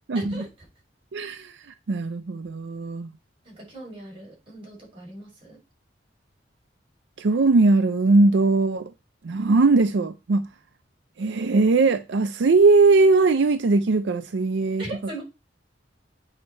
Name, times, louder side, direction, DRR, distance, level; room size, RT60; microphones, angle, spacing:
voice 1, 0.1-0.7 3.4-5.6 14.8-15.2, right 2 dB, 30° right, 5.6 m, -39 dB
voice 2, 1.1-1.6 1.9-3.1 7.2-8.9 9.2-10.5 11.2-14.8, right 3 dB, 70° right, 0.5 m, -20 dB
8.7 x 5.3 x 4.4 m
head